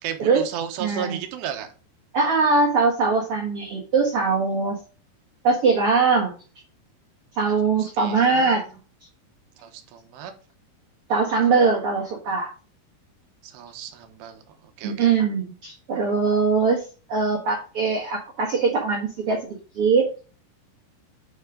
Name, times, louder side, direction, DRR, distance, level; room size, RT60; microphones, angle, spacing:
voice 1, 0.0-1.7 8.0-8.7 9.6-10.3 13.4-14.4 14.8-15.2, right 9 dB, 85° right, 6 dB, 3.3 m, -34 dB
voice 2, 0.8-1.2 2.1-4.8 5.4-6.3 7.3-8.6 11.1-12.5 14.8-20.1, right 4 dB, 60° right, -1 dB, 1.5 m, -21 dB
9.4 x 4.9 x 3.8 m, 0.35 s
omnidirectional pair, 4.8 m